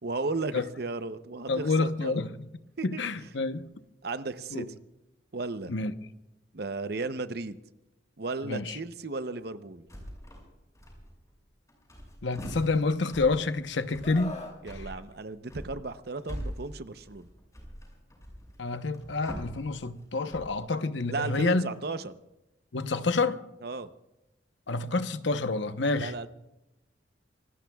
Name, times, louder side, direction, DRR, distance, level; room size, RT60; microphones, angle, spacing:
voice 1, 0.0-2.2 2.8-3.0 4.0-4.8 5.3-5.7 6.5-7.6 8.2-9.9 14.6-17.3 21.1-22.1 23.6-23.9 26.0-26.3, right 3 dB, 55° right, 0.7 m, -35 dB
voice 2, 1.5-2.5 2.8-3.7 4.5-4.6 5.7-5.9 8.4-8.8 12.2-14.4 18.6-21.7 22.7-23.4 24.7-26.1, left 3 dB, 75° left, 0.9 m, -28 dB
sound 1, 9.9-10.5 10.7-11.4 11.7-20.7, equal, 15° left, 6.1 m, -43 dB
Screaming, 14.0-14.6 16.1-16.3, left 2 dB, 35° left, 1.9 m, -40 dB
26.0 x 20.0 x 2.3 m
head